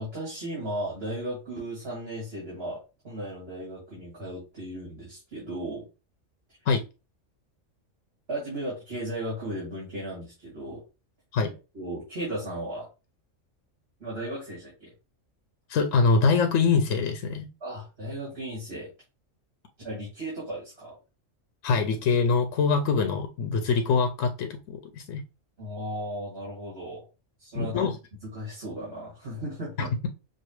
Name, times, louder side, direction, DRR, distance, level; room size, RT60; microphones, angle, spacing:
voice 1, 0.0-2.8 3.0-5.8 8.3-10.8 11.7-12.9 14.0-14.9 17.6-18.9 19.8-21.0 25.6-27.1 27.4-27.9 28.3-29.9, right 1 dB, 50° right, -6 dB, 2.7 m, -35 dB
voice 2, 15.7-17.5 21.6-25.2 27.5-27.9 29.8-30.1, left 4 dB, 90° left, 5 dB, 1.0 m, -24 dB
6.4 x 2.4 x 3.1 m, 0.30 s
omnidirectional pair, 1.3 m